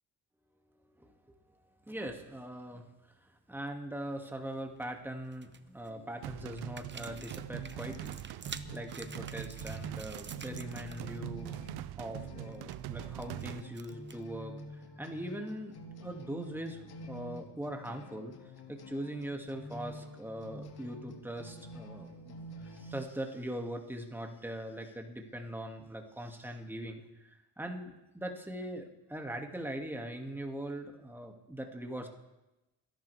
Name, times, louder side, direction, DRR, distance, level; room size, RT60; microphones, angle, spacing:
voice 1, 1.0-1.4 1.9-2.9 3.5-11.5 12.0-18.4 18.7-22.4 22.6-32.1, right 1 dB, 5° right, 3 dB, 2.3 m, -41 dB
sound 1, 4.4-4.8 5.3-5.9 6.5-11.2 11.4-11.7 12.1-14.3, right 6 dB, 25° right, 0.9 m, -49 dB
sound 2, 6.2-13.6, right 16 dB, 65° right, 0.6 m, -43 dB
sound 3, 6.9-23.0, equal, 65° left, 2.5 m, -48 dB
27.0 x 11.5 x 3.5 m, 0.98 s
supercardioid pair, 60°, 41 cm